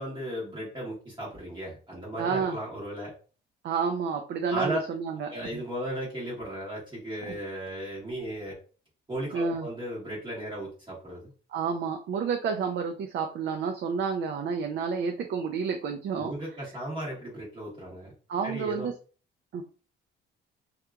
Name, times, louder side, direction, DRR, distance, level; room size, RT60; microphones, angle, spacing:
voice 1, 0.0-3.1 4.5-4.8 5.3-8.6 9.1-11.3 16.2-18.1 18.4-18.9, right 1 dB, 25° right, -6 dB, 1.3 m, -35 dB
voice 2, 2.2-2.6 3.6-5.3 7.3-7.4 9.3-9.7 11.5-16.3 18.3-18.9 19.5-19.6, right 5 dB, 60° right, 4 dB, 0.4 m, -30 dB
2.8 x 2.4 x 2.3 m, 0.38 s
cardioid pair, 115°, 20 cm